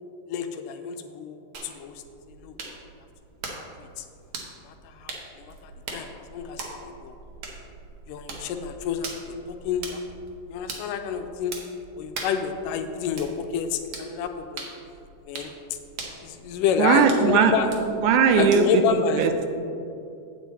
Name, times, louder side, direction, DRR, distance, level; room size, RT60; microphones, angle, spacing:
voice 1, 0.3-2.0 2.4-2.6 3.8-4.1 4.6-7.2 8.1-10.0 10.5-11.5 12.0-14.7 15.3-15.5 16.2-17.7 18.4-19.3, left 7 dB, 85° left, 6 dB, 2.2 m, -29 dB
sound 1, 1.5-18.9, right 3 dB, 60° right, 1.4 m, -41 dB
voice 2, 16.8-17.5 18.0-18.6 19.2-19.5, right 7 dB, 80° right, 6 dB, 1.9 m, -19 dB
8.2 x 8.2 x 4.1 m, 2.7 s
omnidirectional pair, 3.8 m